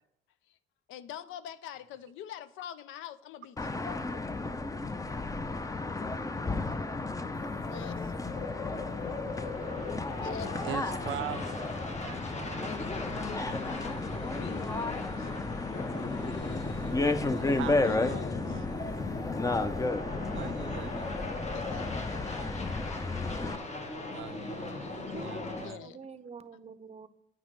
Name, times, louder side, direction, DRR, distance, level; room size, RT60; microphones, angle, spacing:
voice 1, 0.9-3.6 4.7-5.2 7.3-8.1 9.3-9.5 10.2-10.7 12.6-15.3 17.6-18.8 21.5-21.9 25.4-26.0, left 10 dB, 90° left, 0.5 m, -45 dB
sound 1, 3.6-23.6, left 2 dB, 15° left, 0.5 m, -33 dB
sound 2, 7.3-25.7, left 3 dB, 35° left, 1.1 m, -39 dB
voice 2, 10.6-11.7 12.0-12.7 17.3-18.9 20.3-21.2 24.1-25.8, right 11 dB, 75° right, 0.5 m, -42 dB
sound 3, 12.8-25.6, left 2 dB, 65° left, 1.0 m, -50 dB
voice 3, 25.1-27.1, right 5 dB, 30° right, 0.6 m, -47 dB
8.7 x 5.8 x 3.2 m
cardioid pair, 90°, 20 cm